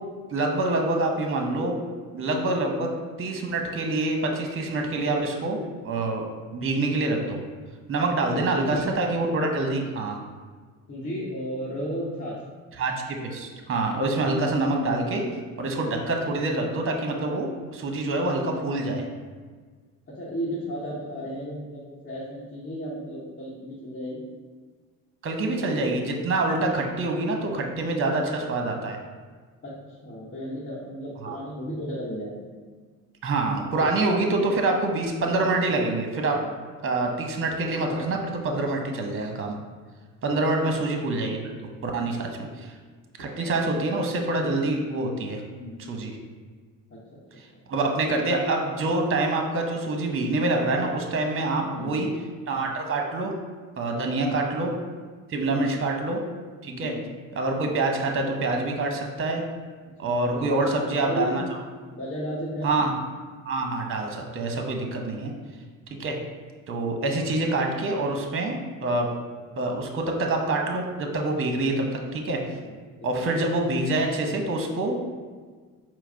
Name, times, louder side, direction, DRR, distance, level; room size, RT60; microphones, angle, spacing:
voice 1, 0.3-1.8 2.1-2.9 3.2-6.2 6.5-7.4 7.9-10.2 12.8-12.9 13.2-15.2 15.6-19.0 25.2-29.0 31.2-31.4 33.2-36.4 36.8-39.6 40.2-41.4 41.8-42.3 42.6-42.7 43.2-45.4 45.9-46.1 47.7-52.1 52.5-53.3 53.8-54.7 55.3-56.2 56.6-56.9 57.4-59.4 60.0-61.4 62.6-62.9 63.4-65.3 66.0-66.2 66.7-69.1 69.6-71.8 72.1-72.4 73.0-75.0, right 2 dB, 35° right, 3 dB, 0.8 m, -26 dB
voice 2, 8.2-8.9 10.9-12.4 20.1-24.2 29.6-29.8 30.0-32.3 40.6-40.7 42.4-42.5 43.2-43.5 45.5-45.9 46.9-47.2 47.5-47.6 51.5-52.0 53.9-54.3 55.3-55.7 56.7-57.0 60.0-61.4 61.9-62.8 68.7-68.8 71.6-71.9 72.6-73.1, equal, 35° left, -8 dB, 1.1 m, -34 dB
4.5 x 2.0 x 4.4 m, 1.5 s
hypercardioid pair, 65°, 37 cm